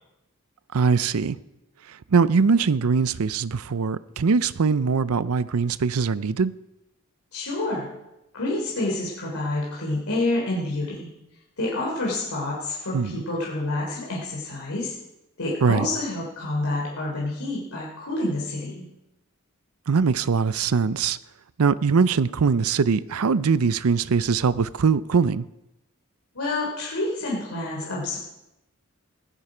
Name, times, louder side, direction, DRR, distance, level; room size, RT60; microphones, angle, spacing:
voice 1, 0.7-1.4 2.1-6.5 12.9-13.2 15.6-15.9 19.9-21.2 21.6-25.5, right 5 dB, 75° right, 0.5 m, -22 dB
voice 2, 7.3-7.9 8.3-11.1 11.6-14.9 15.4-18.8 26.3-28.2, left 2 dB, 75° left, 3.4 m, -28 dB
16.5 x 13.0 x 5.0 m
head